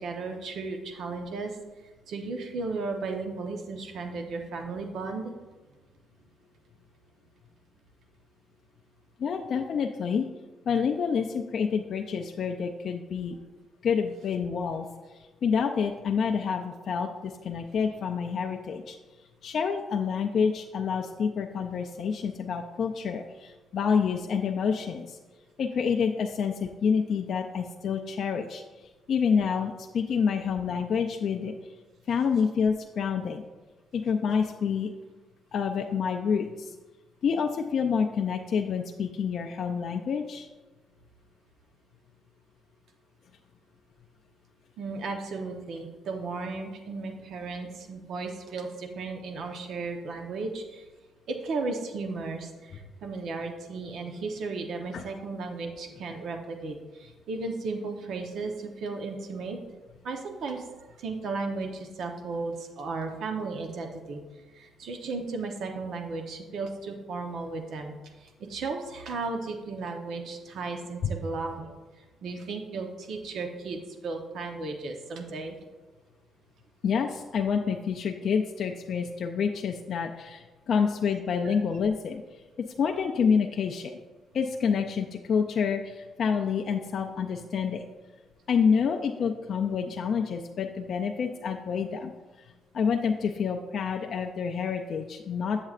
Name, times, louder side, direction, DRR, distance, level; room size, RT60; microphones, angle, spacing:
voice 1, 0.0-5.3 44.8-50.9 51.3-59.6 60.0-60.6 61.0-64.2 64.5-75.6 81.4-81.6, right 3 dB, 70° right, 4 dB, 0.9 m, -35 dB
voice 2, 9.2-10.3 10.7-13.4 13.8-14.9 15.4-19.0 19.4-25.2 25.6-28.6 29.1-31.5 32.1-33.4 33.9-34.9 35.5-36.7 37.2-40.5 54.9-55.0 71.0-71.1 76.8-82.2 82.8-83.9 84.3-87.8 88.5-92.1 92.7-95.6, left 6 dB, 60° left, 2 dB, 0.4 m, -28 dB
7.9 x 7.5 x 2.4 m, 1.2 s
cardioid pair, 90°, 0 cm